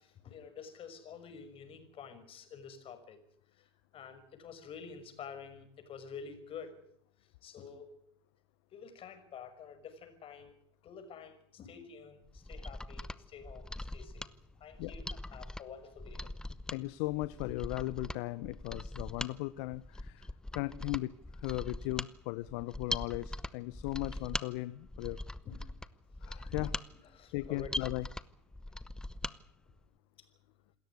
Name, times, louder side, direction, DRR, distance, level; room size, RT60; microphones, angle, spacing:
voice 1, 0.0-3.2 3.6-3.7 3.9-6.8 7.4-8.0 8.7-10.5 10.8-13.7 13.9-14.3 14.6-16.3 25.0-25.1 25.4-25.6 26.5-26.6 27.1-27.7, left 6 dB, 40° left, 8 dB, 6.0 m, -49 dB
Mechanisms, 12.3-29.4 29.7-29.8, left 1 dB, 5° left, 0.9 m, -42 dB
voice 2, 16.7-20.3 20.5-21.1 21.4-25.2 26.2-26.7 27.3-28.1, left 19 dB, 60° left, 16 dB, 0.9 m, -37 dB
27.5 x 14.0 x 9.6 m, 0.67 s
hypercardioid pair, 90°, 15 cm